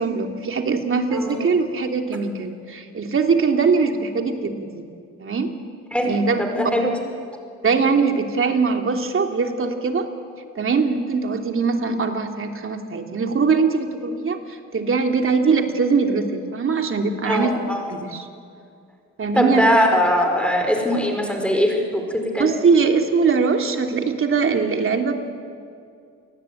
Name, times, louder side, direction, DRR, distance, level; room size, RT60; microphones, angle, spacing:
voice 1, 0.0-4.8 5.2-5.5 6.1-6.7 7.6-10.1 10.5-18.3 19.2-19.6 22.4-25.2, right 5 dB, 45° right, 4 dB, 3.1 m, -21 dB
voice 2, 1.1-1.4 5.9-6.1 6.4-6.9 17.2-17.9 19.3-22.5, equal, 5° left, 3 dB, 4.9 m, -21 dB
28.5 x 20.5 x 9.3 m, 2.4 s
cardioid pair, 90°, 30 cm